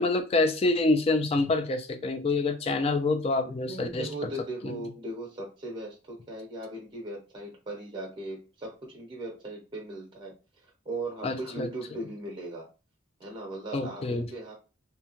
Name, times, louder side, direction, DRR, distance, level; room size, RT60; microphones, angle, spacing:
voice 1, 0.0-4.1 4.6-4.8 11.2-11.7 13.7-14.3, left 2 dB, 30° left, 7 dB, 0.3 m, -26 dB
voice 2, 3.4-10.3 10.6-12.7 13.2-14.5, right 1 dB, 25° right, 0 dB, 0.7 m, -38 dB
2.7 x 2.2 x 2.9 m, 0.32 s
head